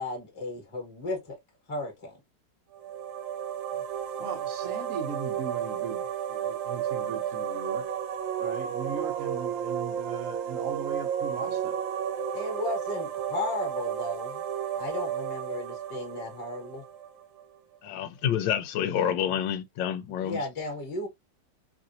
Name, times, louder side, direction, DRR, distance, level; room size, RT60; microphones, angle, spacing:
voice 1, 0.0-1.4 1.7-2.2 12.3-14.4 14.7-16.8 19.3-19.4 20.2-21.1, left 2 dB, 20° left, 1.1 m, -34 dB
sound 1, 2.7-17.4, right 8 dB, 80° right, 1.3 m, -32 dB
voice 2, 4.2-7.9 8.4-11.8, right 6 dB, 60° right, 0.9 m, -39 dB
voice 3, 17.8-20.4, left 9 dB, 85° left, 1.3 m, -28 dB
3.2 x 2.5 x 2.6 m
omnidirectional pair, 2.0 m